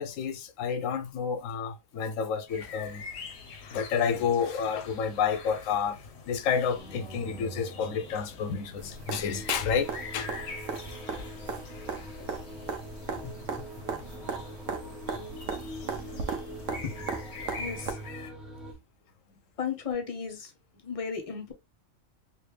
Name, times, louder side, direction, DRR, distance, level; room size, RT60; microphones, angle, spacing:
voice 1, 0.0-3.0 3.7-10.3 15.1-15.2, left 6 dB, 85° left, 1.0 m, -30 dB
sound 1, 2.5-18.3, left 4 dB, 60° left, 1.0 m, -45 dB
sound 2, 6.7-18.7, right 1 dB, ahead, 0.8 m, -44 dB
sound 3, 8.8-17.9 19.9-20.0, right 5 dB, 75° right, 1.1 m, -38 dB
voice 2, 17.3-18.1 19.6-20.5 20.8-21.5, left 6 dB, 35° left, 0.7 m, -35 dB
3.3 x 2.9 x 3.2 m
omnidirectional pair, 1.3 m